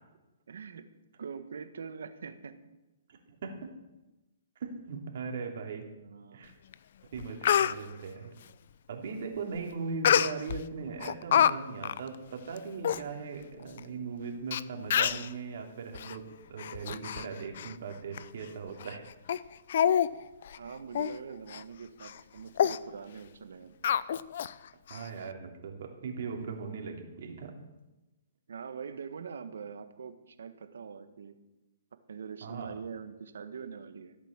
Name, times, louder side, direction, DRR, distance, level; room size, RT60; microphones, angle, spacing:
voice 1, 0.5-0.9 1.2-2.6 6.0-6.5 20.5-23.8 28.5-31.4 32.1-34.2, right 6 dB, 80° right, 10 dB, 1.5 m, -43 dB
voice 2, 3.1-3.5 4.6-5.9 6.3-6.5 7.1-8.3 8.9-16.2 16.5-19.0 24.9-27.6 32.4-32.7, right 5 dB, 60° right, 2 dB, 3.0 m, -39 dB
Speech, 6.7-6.8 7.2-7.7 10.0-10.6 11.0-11.5 11.8-12.0 12.6-12.7 12.8-13.0 13.8-13.9 14.5-14.6 14.9-15.3 15.9-16.1 16.6-17.3 17.6-17.7 18.2-18.3 18.8-18.9 19.3-19.4 19.7-20.1 20.4-20.6 20.9-21.1 21.5-21.6 22.0-22.2 22.6-22.8 23.8-24.5 24.9-25.0, left 9 dB, 60° left, 0.5 m, -26 dB
15.0 x 8.4 x 7.4 m, 1.0 s
hypercardioid pair, 150°, 0 cm